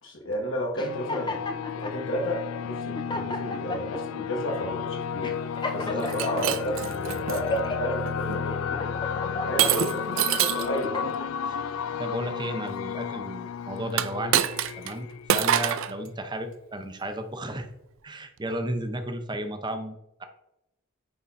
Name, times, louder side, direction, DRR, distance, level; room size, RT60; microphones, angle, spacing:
voice 1, 0.0-1.4 1.7-5.3 5.7-8.9 9.5-11.0, equal, 65° left, -1 dB, 1.7 m, -32 dB
sound 1, 0.8-16.1, left 7 dB, 85° left, 0.4 m, -33 dB
sound 2, 0.8-2.0 2.6-2.7 3.0-4.0 4.6-4.8 5.2-6.8 7.2-8.0 8.5-9.7 10.3-11.3, left 2 dB, 20° left, 0.7 m, -34 dB
Shatter, 6.0-7.4 8.1-8.4 9.6-10.7 13.9-14.9 15.3-15.9, right 10 dB, 70° right, 0.4 m, -25 dB
voice 2, 12.0-14.4 14.8-17.7 18.0-20.3, right 1 dB, 20° right, 7 dB, 0.8 m, -34 dB
9.4 x 3.8 x 4.2 m, 0.89 s
head